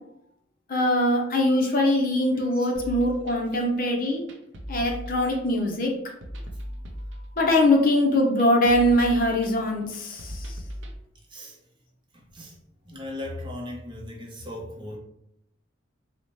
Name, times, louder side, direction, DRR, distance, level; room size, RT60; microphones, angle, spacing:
voice 1, 0.7-4.2 4.7-5.9 7.4-10.6, left 1 dB, 45° left, 1 dB, 0.6 m, -22 dB
sound 1, 2.8-11.0, equal, 65° right, 0.5 m, -39 dB
voice 2, 12.1-12.6 12.9-15.0, left 1 dB, 25° right, -1 dB, 0.6 m, -38 dB
3.9 x 2.1 x 3.1 m, 0.79 s
head